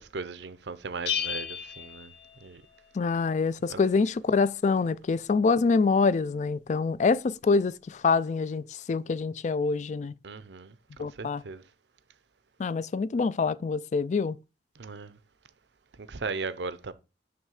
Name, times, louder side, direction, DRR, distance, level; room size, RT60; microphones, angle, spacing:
voice 1, 0.0-2.1 2.4-2.6 3.7-3.8 10.2-11.6 14.8-15.2 16.0-16.9, right 4 dB, 80° right, 0.7 m, -37 dB
Bell, 1.1-2.9, left 8 dB, 85° left, 1.2 m, -34 dB
voice 2, 2.9-10.1 11.0-11.4 12.6-14.4, left 4 dB, 40° left, 0.3 m, -25 dB
9.5 x 3.3 x 6.4 m
head